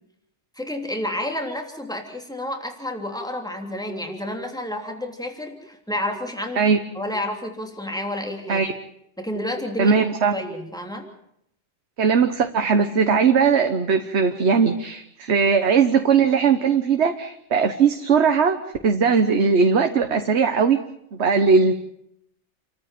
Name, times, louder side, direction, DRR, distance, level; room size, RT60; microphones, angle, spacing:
voice 1, 0.6-8.6 9.2-9.9 10.3-11.0, left 1 dB, 5° left, 3 dB, 3.2 m, -30 dB
voice 2, 9.8-10.3 12.0-18.6 18.8-20.8 21.1-21.7, right 5 dB, 70° right, 7 dB, 1.4 m, -19 dB
28.0 x 13.5 x 9.2 m, 0.76 s
omnidirectional pair, 1.2 m